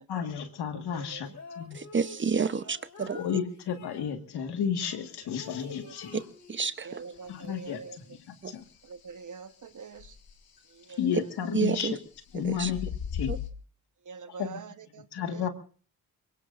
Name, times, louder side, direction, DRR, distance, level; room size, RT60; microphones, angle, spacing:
voice 1, 0.1-1.3 1.6-1.8 3.1-6.2 7.3-7.8 8.1-8.6 11.0-12.0 12.3-13.3 14.4-14.6 15.1-15.5, left 8 dB, 90° left, 7 dB, 1.7 m, -32 dB
voice 2, 0.9-1.3 2.4-2.7 5.4-5.9 6.8-8.0 8.8-10.2 10.7-11.1 11.4-11.5 12.5-12.8 14.0-15.5, right 5 dB, 50° right, 11 dB, 1.2 m, -45 dB
sound 1, 1.2-4.1 4.8-6.8 7.1-8.2, left 4 dB, 50° left, 2.7 m, -48 dB
voice 3, 1.7-3.2 6.5-6.9 8.4-8.5 11.5-11.9 12.4-12.7 13.3-13.4, right 5 dB, 30° right, 14 dB, 0.8 m, -29 dB
sound 2, 5.7-6.3 6.6-6.7 7.2-7.6 8.5-8.6 10.0-10.6 12.2-13.5, left 8 dB, 65° left, 1.8 m, -37 dB
23.5 x 23.0 x 2.5 m, 0.40 s
cardioid pair, 80°, 38 cm